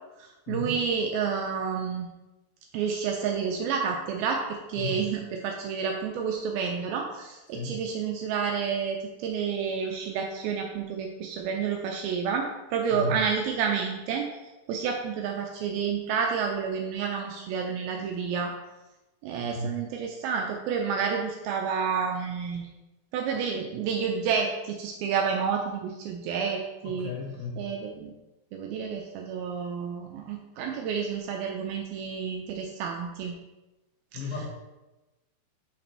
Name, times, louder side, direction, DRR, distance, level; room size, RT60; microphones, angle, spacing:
voice 1, 0.2-2.1 2.7-18.6 19.2-22.7 23.1-27.1 27.6-28.1 28.5-33.4 34.1-34.4, right 6 dB, 80° right, 2 dB, 2.2 m, -30 dB
voice 2, 4.7-5.1 7.5-7.8 12.9-13.2 19.4-19.8 26.8-27.6 34.1-34.5, left 2 dB, 70° left, -1 dB, 2.7 m, -34 dB
6.0 x 4.2 x 4.3 m, 1.0 s
omnidirectional pair, 4.7 m